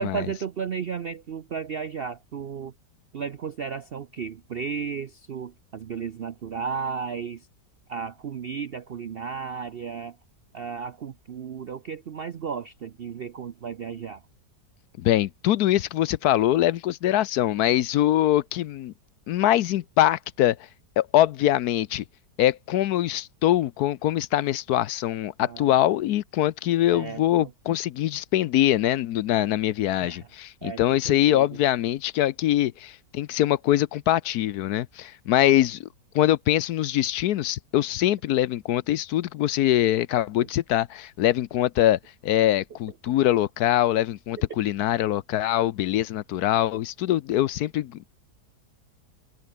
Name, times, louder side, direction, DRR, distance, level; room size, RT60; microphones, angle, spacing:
voice 1, 0.0-2.7 3.1-7.5 7.9-10.2 10.5-14.2 25.4-25.8 26.9-27.5 30.0-30.3 30.6-31.5 40.4-40.5 44.5-44.6, right 6 dB, 60° right, 0.6 m, -34 dB
voice 2, 15.0-18.9 19.3-20.6 21.0-22.0 22.4-35.9 36.1-48.1, left 13 dB, 70° left, 1.1 m, -23 dB
omnidirectional pair, 1.8 m